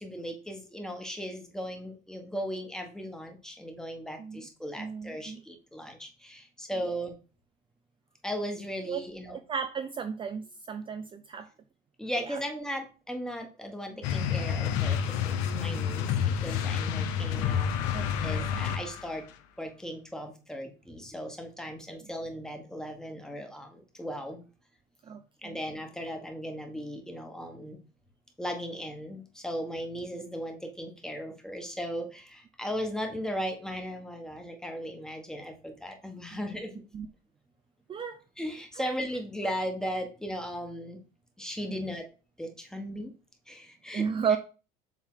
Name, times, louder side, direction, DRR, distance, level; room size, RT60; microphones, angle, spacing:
voice 1, 0.0-7.2 8.2-9.4 12.0-17.7 18.2-19.2 19.6-24.4 25.4-27.8 28.4-36.7 38.4-41.0 41.4-42.1 42.4-43.1 43.5-44.0, equal, 5° left, 4 dB, 1.2 m, -37 dB
voice 2, 4.8-5.4 6.8-6.9 8.9-11.5 12.2-12.4 15.7-15.8 17.9-18.6 21.9-22.1 25.0-25.6 36.3-36.4 36.9-37.1 37.9-38.2 38.7-38.9 43.9-44.4, right 6 dB, 25° right, 8 dB, 0.4 m, -34 dB
sound 1, 14.0-19.2, left 7 dB, 90° left, 0.8 m, -29 dB
7.2 x 3.5 x 3.7 m, 0.34 s
cardioid pair, 125°, 20 cm